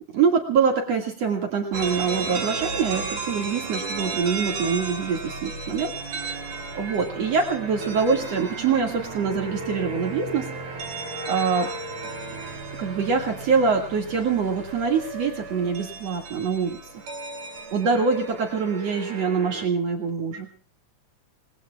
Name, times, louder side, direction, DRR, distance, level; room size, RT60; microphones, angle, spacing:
voice 1, 0.1-10.5 11.3-11.7 12.8-16.8 17.7-20.5, right 5 dB, 60° right, 1 dB, 3.1 m, -24 dB
sound 1, 1.7-19.7, right 3 dB, 85° right, 4.6 m, -34 dB
30.0 x 20.5 x 2.4 m, 0.39 s
omnidirectional pair, 3.4 m